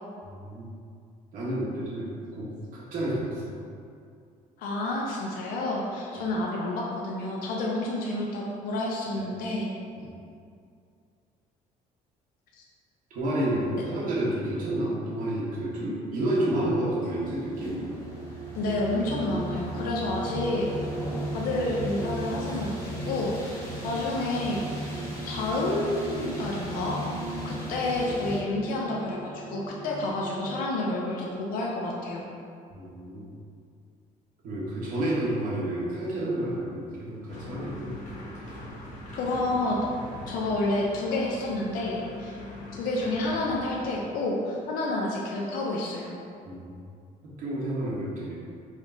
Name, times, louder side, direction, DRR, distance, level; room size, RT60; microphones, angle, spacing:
voice 1, 0.4-0.7 1.3-3.6 10.0-10.1 13.1-17.9 32.7-33.4 34.4-37.9 46.4-46.8 47.2-48.3, right 1 dB, 65° right, -7 dB, 1.3 m, -30 dB
voice 2, 4.6-9.7 12.5-12.6 18.6-20.7 21.3-23.6 23.8-24.9 25.2-27.0 27.4-32.2 39.1-39.8 40.3-42.4 42.7-46.1, left 2 dB, 70° left, -3 dB, 0.6 m, -29 dB
sound 1, 17.0-28.4, right 1 dB, 20° left, 1.0 m, -38 dB
sound 2, 17.9-30.6, right 1 dB, 25° right, 0.5 m, -39 dB
sound 3, 37.3-44.0, left 1 dB, 55° left, 0.9 m, -42 dB
4.8 x 3.2 x 2.7 m, 2.3 s
cardioid pair, 135°, 15 cm